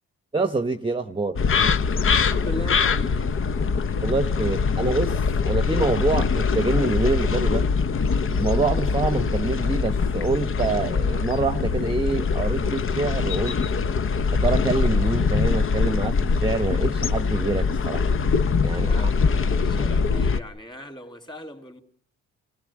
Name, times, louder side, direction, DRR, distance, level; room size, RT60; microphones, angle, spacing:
voice 1, 0.3-1.4 4.0-7.7 8.3-13.6 14.3-18.1 18.6-18.9, right 3 dB, 15° right, 1.0 m, -26 dB
sound 1, 1.4-20.4, left 5 dB, 45° left, 0.9 m, -23 dB
voice 2, 2.0-3.3 18.7-21.8, equal, 15° left, 3.3 m, -39 dB
28.0 x 16.5 x 7.5 m
cardioid pair, 90°, 30 cm